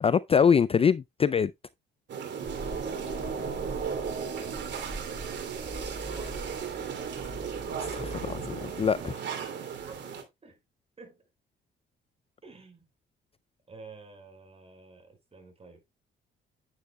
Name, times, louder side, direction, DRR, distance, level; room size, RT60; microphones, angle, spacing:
voice 1, 0.0-1.5 7.8-9.2, left 7 dB, 30° left, 0.4 m, -24 dB
sound 1, 2.1-10.2, right 6 dB, 65° right, 2.9 m, -35 dB
sound 2, 2.4-9.1, right 1 dB, 10° right, 3.6 m, -43 dB
voice 2, 2.4-6.7 9.8-10.6 11.0-11.3 12.4-12.9 13.7-15.8, right 3 dB, 30° right, 5.2 m, -51 dB
10.0 x 9.4 x 2.2 m
cardioid pair, 90°, 20 cm